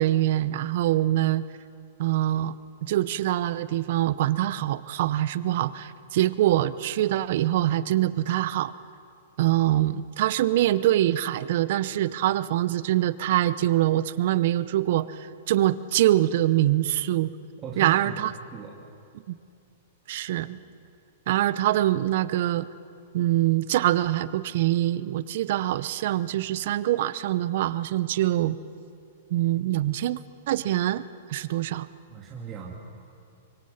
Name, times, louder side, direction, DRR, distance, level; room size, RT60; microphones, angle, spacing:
voice 1, 0.0-1.4 2.0-2.5 2.8-8.7 9.4-17.3 17.8-18.3 19.3-19.4 20.1-20.6 21.3-22.7 23.1-28.6 29.3-30.2 30.5-31.9, right 14 dB, 60° right, 16 dB, 0.7 m, -24 dB
voice 2, 17.6-18.2 18.5-18.8 32.1-32.7, right 6 dB, 25° right, -3 dB, 2.7 m, -37 dB
25.5 x 23.5 x 5.8 m, 2.5 s
hypercardioid pair, 125°, 0 cm